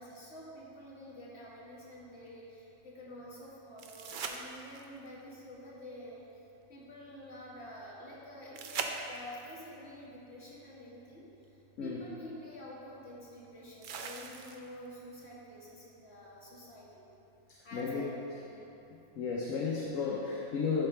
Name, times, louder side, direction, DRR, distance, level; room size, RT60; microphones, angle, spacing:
voice 1, 0.0-6.2 6.7-11.3 11.8-17.0 17.6-18.7, equal, 50° left, -8 dB, 2.0 m, -48 dB
sound 1, 3.8-5.1 8.5-9.5 11.4-11.5 13.8-14.9 17.8-17.9, right 5 dB, 80° right, 0.4 m, -40 dB
voice 2, 17.7-18.0 19.2-20.9, left 5 dB, 70° left, -3 dB, 1.1 m, -33 dB
12.0 x 4.5 x 3.3 m, 2.8 s
omnidirectional pair, 1.4 m